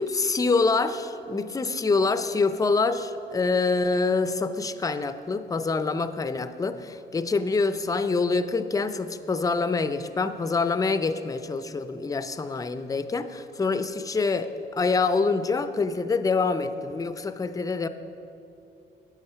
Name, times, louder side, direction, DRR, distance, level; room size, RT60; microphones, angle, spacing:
voice 1, 0.0-17.9, left 4 dB, 15° left, 11 dB, 0.5 m, -26 dB
10.5 x 7.6 x 5.7 m, 2.8 s
cardioid pair, 90°, 20 cm